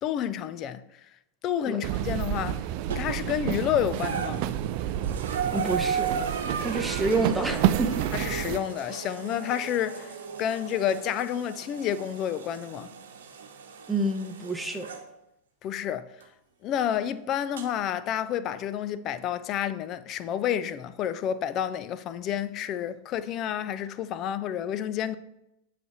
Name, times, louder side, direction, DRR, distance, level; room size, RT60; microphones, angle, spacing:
voice 1, 0.0-0.8 1.4-4.5 8.1-12.9 15.6-16.1 16.6-25.2, left 10 dB, 35° left, 0.5 m, -30 dB
sound 1, 1.8-8.6, right 11 dB, 45° right, 0.4 m, -29 dB
sound 2, 2.9-3.4 3.9-15.1 16.2-16.3 17.6-17.7, right 6 dB, 60° right, 1.0 m, -36 dB
voice 2, 5.5-6.1 6.6-8.0 13.9-14.9, right 2 dB, ahead, 1.0 m, -28 dB
8.5 x 3.4 x 6.6 m
figure-of-eight pair, 90°, 0 cm